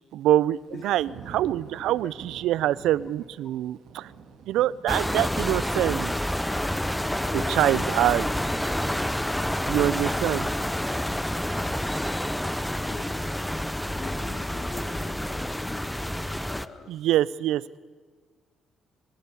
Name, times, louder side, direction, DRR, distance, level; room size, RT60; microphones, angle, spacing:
voice 1, 0.1-4.1 4.5-6.1 7.3-8.3 9.7-10.5 16.9-17.8, right 13 dB, 80° right, 21 dB, 0.5 m, -25 dB
Thunder / Rain, 0.5-11.5 11.9-12.3, right 6 dB, 60° right, 2.9 m, -50 dB
sound 1, 4.9-16.7, left 1 dB, 5° left, 0.6 m, -28 dB
voice 2, 7.1-9.4 12.8-16.9, left 4 dB, 45° left, 7 dB, 2.6 m, -43 dB
22.5 x 12.5 x 9.8 m, 1.5 s
cardioid pair, 95°, 0 cm